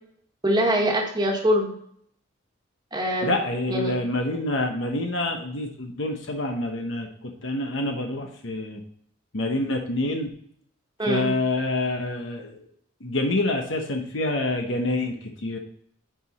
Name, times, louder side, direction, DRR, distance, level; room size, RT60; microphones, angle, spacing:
voice 1, 0.4-1.7 2.9-3.3 3.7-3.9 11.0-11.3, equal, 20° right, 1 dB, 1.4 m, -23 dB
voice 2, 3.2-8.8 9.3-10.3 11.1-12.5 13.0-15.6, left 2 dB, 65° left, 3 dB, 1.0 m, -27 dB
9.0 x 4.9 x 4.1 m, 0.66 s
head